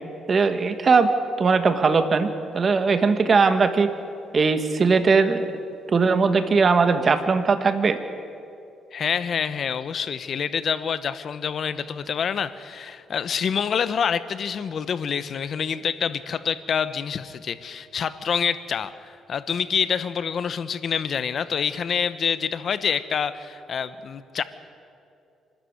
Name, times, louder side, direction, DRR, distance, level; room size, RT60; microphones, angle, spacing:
voice 1, 0.3-1.1 1.4-2.3 2.5-3.9 4.3-5.5 5.9-8.0, right 4 dB, 40° right, 9 dB, 1.7 m, -19 dB
voice 2, 8.9-24.4, left 7 dB, 55° left, 13 dB, 1.0 m, -27 dB
26.0 x 13.0 x 9.6 m, 2.6 s
cardioid pair, 90°, 0 cm